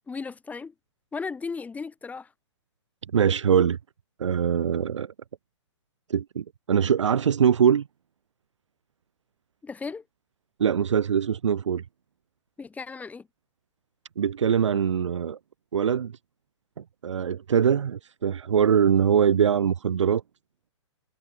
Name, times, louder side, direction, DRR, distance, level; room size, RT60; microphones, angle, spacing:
voice 1, 0.1-0.7 1.1-2.3 9.6-10.0 12.6-13.3, left 4 dB, 10° left, 2.3 m, -35 dB
voice 2, 3.1-3.8 4.2-5.1 6.1-7.9 10.6-11.8 14.2-15.4 15.7-16.1 17.0-20.2, right 8 dB, 75° right, 0.5 m, -22 dB
figure-of-eight pair, 120°, 15 cm